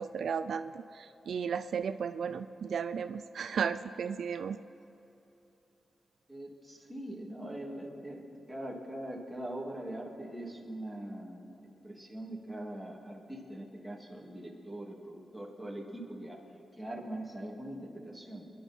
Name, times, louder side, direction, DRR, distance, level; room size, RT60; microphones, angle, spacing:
voice 1, 0.0-4.6, right 6 dB, 75° right, 10 dB, 0.4 m, -34 dB
voice 2, 6.3-11.5 11.8-16.4 16.8-18.5, right 1 dB, 5° right, -3 dB, 2.8 m, -42 dB
28.5 x 11.0 x 4.6 m, 3.0 s
wide cardioid pair, 110°, 0 cm